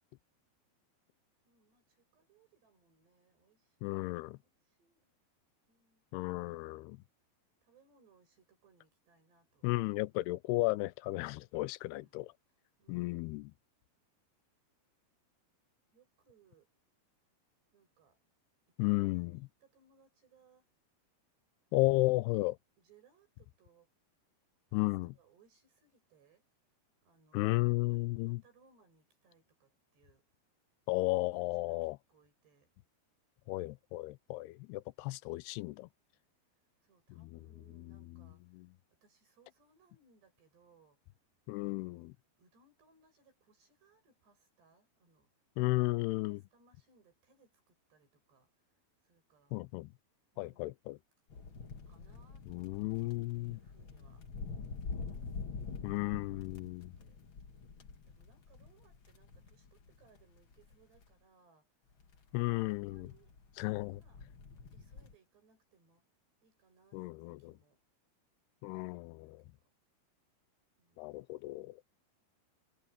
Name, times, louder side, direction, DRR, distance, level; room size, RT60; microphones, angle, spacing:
voice 1, 1.4-3.8 4.4-5.1 5.7-7.0 7.6-9.8 11.9-12.1 12.8-13.4 15.9-16.7 17.7-18.2 18.7-20.7 21.7-22.2 22.8-23.9 24.7-26.5 27.0-27.5 27.9-30.3 31.1-32.7 35.1-35.2 36.5-38.6 38.9-41.1 41.5-42.1 42.4-45.3 46.3-49.6 50.3-50.7 51.9-52.5 53.3-54.3 54.8-55.5 56.5-57.5 58.0-61.8 62.3-63.3 63.9-64.3 64.7-66.0 66.4-67.8 68.7-69.7 70.8-71.2, right 4 dB, 85° right, 10.5 m, -69 dB
voice 2, 3.8-4.4 6.1-7.0 9.6-12.3 12.9-13.5 18.8-19.4 21.7-22.6 24.7-25.1 27.3-28.4 30.9-32.0 33.5-35.9 37.2-37.4 38.5-38.7 41.5-42.1 45.6-46.4 49.5-49.9 50.4-51.0 52.5-53.6 55.8-57.0 62.3-63.1 63.6-64.0 66.9-67.5 68.6-69.4 71.0-71.8, left 21 dB, 85° left, 2.6 m, -34 dB
sound 1, 51.3-61.1 62.0-65.1, left 4 dB, 50° left, 1.5 m, -46 dB
omnidirectional pair, 4.7 m